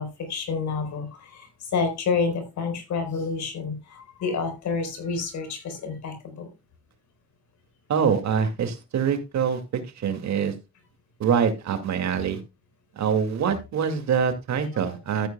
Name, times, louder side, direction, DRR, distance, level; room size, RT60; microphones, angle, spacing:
voice 1, 0.0-6.5 14.7-15.2, left 5 dB, 70° left, 6 dB, 4.2 m, -29 dB
voice 2, 7.9-9.6 10.0-10.5 11.2-12.4 13.0-15.3, right 7 dB, 65° right, 8 dB, 2.3 m, -24 dB
13.5 x 9.5 x 2.3 m, 0.25 s
cardioid pair, 90°, 30 cm